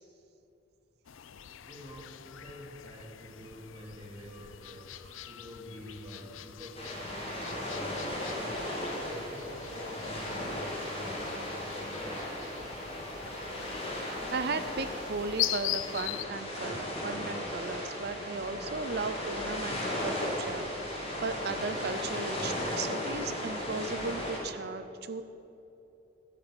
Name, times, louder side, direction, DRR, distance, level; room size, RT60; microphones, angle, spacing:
sound 1, 1.0-16.2, left 13 dB, 80° left, 0.5 m, -42 dB
voice 1, 1.6-12.4, equal, 25° right, -4 dB, 2.5 m, -48 dB
sound 2, 6.8-24.4, left 1 dB, 30° left, 3.0 m, -36 dB
voice 2, 13.6-25.2, right 4 dB, 55° right, 11 dB, 0.6 m, -36 dB
11.0 x 9.9 x 8.0 m, 2.9 s
head